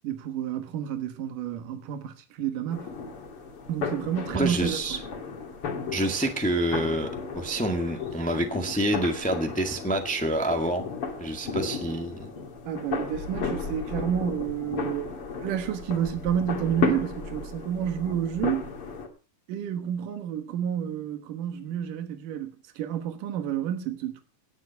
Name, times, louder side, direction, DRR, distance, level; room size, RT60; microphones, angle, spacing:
voice 1, 0.0-2.9 3.7-5.0 12.6-18.7 19.5-24.2, right 9 dB, 80° right, 3.0 m, -30 dB
sound 1, 2.7-19.1, left 5 dB, 45° left, 2.9 m, -34 dB
voice 2, 4.3-5.0 5.9-7.1 7.3-10.8 11.2-12.3, right 1 dB, 10° left, 0.4 m, -27 dB
18.5 x 7.2 x 6.9 m
omnidirectional pair, 3.7 m